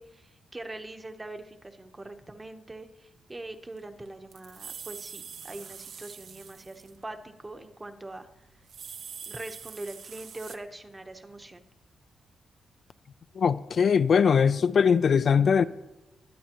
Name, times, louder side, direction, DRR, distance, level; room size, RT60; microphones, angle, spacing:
voice 1, 0.0-8.3 9.3-11.6, right 2 dB, 15° right, 0.9 m, -42 dB
sound 1, 3.5-3.6 3.8-7.1 7.3-7.5 8.4-10.6, right 7 dB, 70° right, 0.8 m, -44 dB
voice 2, 13.4-15.6, left 6 dB, 50° left, 0.4 m, -21 dB
22.0 x 9.7 x 3.0 m
wide cardioid pair, 140°, 0 cm